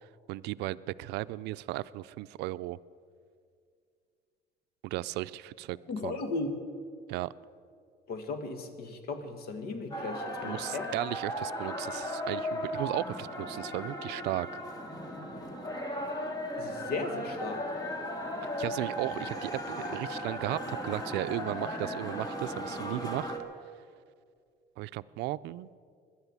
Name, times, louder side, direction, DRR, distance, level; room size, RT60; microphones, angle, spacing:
voice 1, 0.3-2.8 4.8-5.8 6.0-6.2 7.1-7.3 10.4-14.6 18.6-23.3 24.8-25.7, right 17 dB, 85° right, 17 dB, 0.4 m, -35 dB
voice 2, 5.9-6.5 8.1-10.9 16.6-17.6, left 3 dB, 65° left, 8 dB, 1.8 m, -36 dB
sound 1, 9.9-23.4, equal, 20° left, 2.2 m, -36 dB
17.5 x 11.5 x 7.2 m, 2.2 s
cardioid pair, 110°, 17 cm